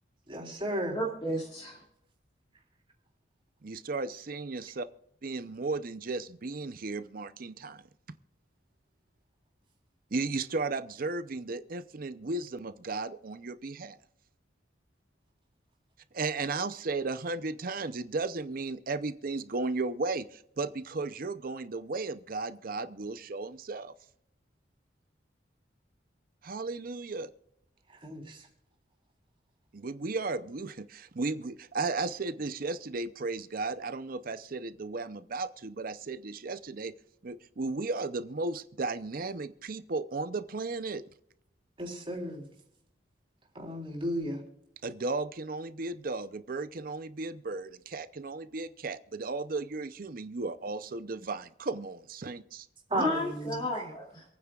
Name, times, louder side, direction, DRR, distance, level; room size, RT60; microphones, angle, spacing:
voice 1, 0.3-1.0 28.0-28.5 41.8-42.5 43.6-44.4 52.9-53.8, right 1 dB, 30° right, 3.6 m, -34 dB
voice 2, 0.9-1.8 52.9-54.2, left 1 dB, 25° left, 2.6 m, -33 dB
voice 3, 3.6-4.9 5.2-7.8 10.1-14.0 16.1-23.9 26.4-27.3 29.7-36.9 37.2-41.0 44.8-52.6, right 3 dB, 50° right, 0.6 m, -35 dB
27.0 x 9.5 x 2.4 m
head